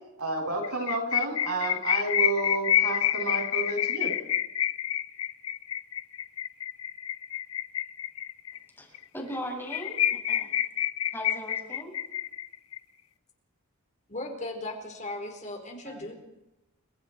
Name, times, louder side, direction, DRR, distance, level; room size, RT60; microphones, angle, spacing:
voice 1, 0.2-4.1 15.8-16.1, right 3 dB, 85° right, 1 dB, 7.7 m, -31 dB
sound 1, 0.6-8.6 8.9-9.0 9.3-9.4 9.7-12.8, left 11 dB, 75° left, 0.9 m, -28 dB
voice 2, 8.8-10.5 11.1-12.0, equal, 10° left, 0 dB, 6.9 m, -38 dB
voice 3, 14.1-16.1, left 2 dB, 35° left, 3 dB, 4.4 m, -37 dB
29.5 x 25.5 x 4.6 m, 0.94 s
head